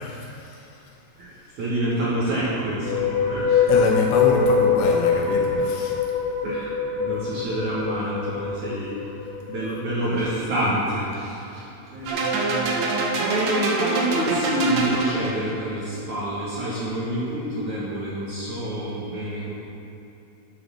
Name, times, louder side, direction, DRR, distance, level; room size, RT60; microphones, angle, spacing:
voice 1, 0.0-1.6 3.7-6.1, left 3 dB, 85° left, 0 dB, 3.1 m, -27 dB
voice 2, 1.2-3.7 6.4-9.1 9.5-19.5, right 1 dB, 55° right, -7 dB, 2.5 m, -28 dB
sound 1, 2.7-10.0, left 6 dB, 65° left, 2.3 m, -23 dB
sound 2, 12.1-15.5, right 3 dB, 70° right, 1.6 m, -25 dB
12.0 x 6.9 x 6.9 m, 2.9 s
omnidirectional pair, 4.9 m